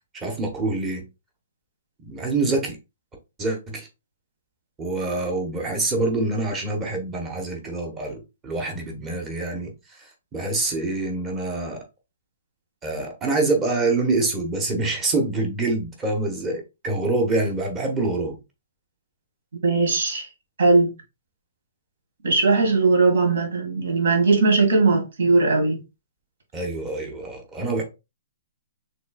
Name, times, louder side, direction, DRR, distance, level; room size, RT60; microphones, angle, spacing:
voice 1, 0.1-1.0 2.0-2.8 3.4-3.9 4.8-11.8 12.8-18.4 26.5-27.8, right 2 dB, 10° right, 0.9 m, -26 dB
voice 2, 19.6-20.3 20.6-20.9 22.2-25.8, right 3 dB, 70° right, 2.0 m, -19 dB
5.9 x 3.3 x 2.3 m
hypercardioid pair, 175°, 0 cm